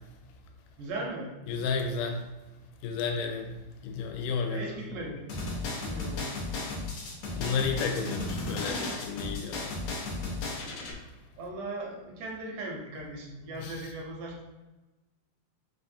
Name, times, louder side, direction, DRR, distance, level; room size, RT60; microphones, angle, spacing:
voice 1, 0.8-1.3 4.5-5.3 5.8-6.5 11.4-14.4, right 2 dB, 80° right, -1 dB, 2.2 m, -38 dB
voice 2, 1.5-2.2 2.8-3.5 3.8-4.7 7.4-9.7 13.6-13.7, left 5 dB, 85° left, 3 dB, 2.1 m, -32 dB
sound 1, 5.3-10.9, left 2 dB, 70° left, 1.8 m, -34 dB
5.1 x 2.3 x 2.7 m, 1.1 s
omnidirectional pair, 3.7 m